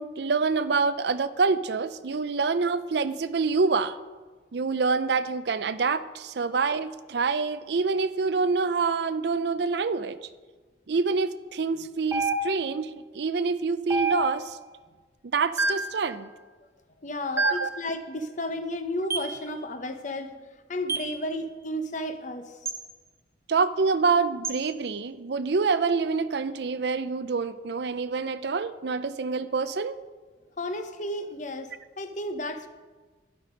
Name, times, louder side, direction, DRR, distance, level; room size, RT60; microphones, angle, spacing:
voice 1, 0.0-4.0 4.5-10.2 10.9-14.6 15.3-16.3 17.3-17.7 23.5-30.0, right 4 dB, 60° right, 13 dB, 0.5 m, -26 dB
sound 1, 12.1-12.8 13.9-14.6 15.6-16.0 17.4-17.8 19.1-19.4 20.9-21.2 22.7-22.8 24.4-24.6, right 2 dB, 15° right, 0.7 m, -28 dB
voice 2, 17.0-22.6 30.6-32.7, left 1 dB, 40° left, 8 dB, 0.9 m, -33 dB
12.0 x 11.0 x 5.1 m, 1.4 s
head